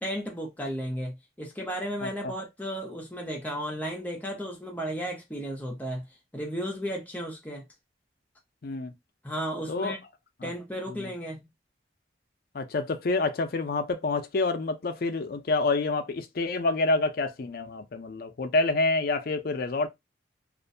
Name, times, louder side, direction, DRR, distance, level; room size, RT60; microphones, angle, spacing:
voice 1, 0.0-6.1 6.3-7.7 9.2-10.0 10.4-11.5, equal, 10° left, 0.7 m, -34 dB
voice 2, 2.0-2.3 8.6-8.9 9.7-10.0 10.4-10.5 10.9-11.1 12.5-19.9, left 3 dB, 55° left, 0.4 m, -28 dB
2.4 x 2.2 x 2.6 m
head